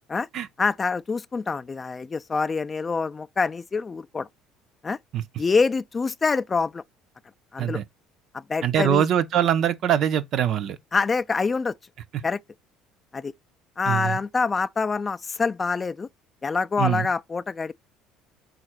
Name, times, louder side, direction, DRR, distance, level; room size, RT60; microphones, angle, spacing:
voice 1, 0.6-4.3 4.8-5.0 5.4-6.8 7.5-7.8 8.3-9.1 10.9-11.7 12.2-12.4 13.1-13.3 13.8-16.1 16.4-17.7, left 4 dB, 30° left, 0.3 m, -25 dB
voice 2, 8.6-10.8 12.1-12.2 13.9-14.2 16.8-17.1, right 10 dB, 55° right, 0.5 m, -23 dB
3.9 x 2.4 x 4.4 m
hypercardioid pair, 65°, 0 cm